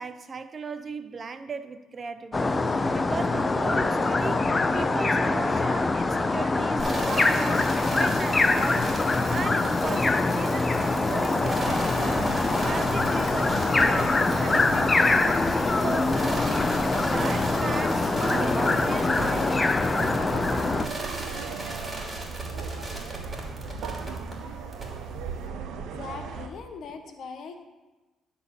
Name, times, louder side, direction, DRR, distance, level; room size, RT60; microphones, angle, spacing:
voice 1, 0.0-9.0 9.3-20.4, right 4 dB, 40° right, 11 dB, 0.6 m, -37 dB
sound 1, 2.3-20.9, left 3 dB, 25° left, 0.6 m, -24 dB
sound 2, 6.8-24.3 24.7-24.8, right 1 dB, 20° right, 3.1 m, -37 dB
sound 3, 11.6-26.5, right 5 dB, 80° right, 0.9 m, -37 dB
voice 2, 26.0-27.6, left 5 dB, 65° left, 6 dB, 1.2 m, -40 dB
11.0 x 4.3 x 7.1 m, 1.1 s
supercardioid pair, 70°, 0 cm